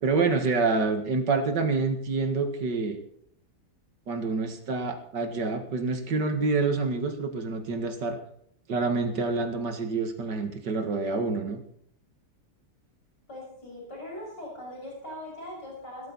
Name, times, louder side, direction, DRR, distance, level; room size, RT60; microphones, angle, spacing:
voice 1, 0.0-3.0 4.1-8.2 8.7-11.6, right 4 dB, 85° right, 6 dB, 2.5 m, -27 dB
voice 2, 13.3-16.1, left 1 dB, 80° left, -2 dB, 6.9 m, -40 dB
17.5 x 13.5 x 4.1 m, 0.68 s
omnidirectional pair, 1.8 m